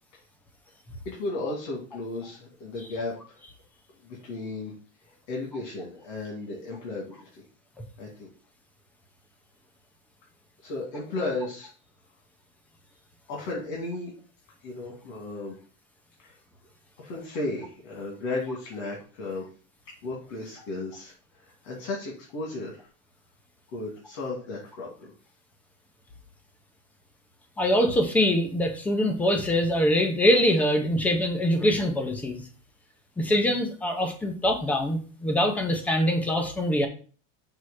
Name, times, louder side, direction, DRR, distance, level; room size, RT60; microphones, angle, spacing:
voice 1, 1.0-3.4 4.0-4.7 5.1-7.4 8.0-8.3 10.6-11.7 13.3-14.1 14.6-15.6 16.2-16.4 17.0-19.5 20.0-22.9 23.7-25.1, left 2 dB, 60° left, -2 dB, 2.4 m, -35 dB
voice 2, 27.6-32.4 33.2-36.9, equal, 5° left, 4 dB, 0.3 m, -24 dB
6.3 x 3.1 x 5.6 m, 0.39 s
cardioid pair, 175°, 37 cm